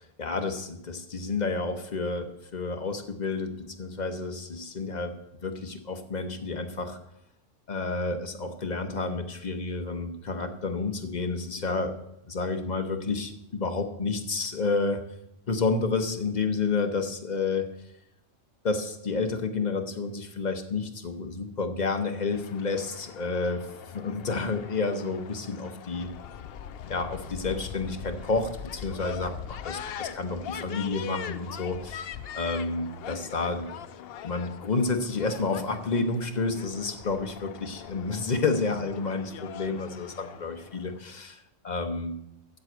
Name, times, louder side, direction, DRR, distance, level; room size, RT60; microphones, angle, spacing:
voice 1, 0.0-5.1 5.4-7.0 7.7-11.9 12.3-15.0 15.5-17.7 18.6-26.1 26.9-32.1 32.3-33.7 34.2-42.2, left 3 dB, 40° left, 7 dB, 0.9 m, -30 dB
sound 1, 22.3-41.0, left 9 dB, 60° left, 0.7 m, -42 dB
7.6 x 7.5 x 7.8 m, 0.83 s
omnidirectional pair, 1.3 m